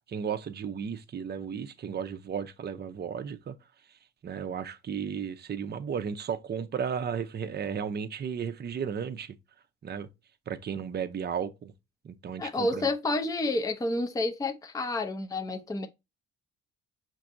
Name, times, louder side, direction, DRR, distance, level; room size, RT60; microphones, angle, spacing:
voice 1, 0.1-3.6 4.2-9.3 9.8-10.1 10.5-11.7 12.0-12.9, right 7 dB, 35° right, 0.5 m, -34 dB
voice 2, 12.4-15.9, left 2 dB, 10° left, 0.5 m, -29 dB
5.8 x 2.6 x 2.5 m
cardioid pair, 90°, 30 cm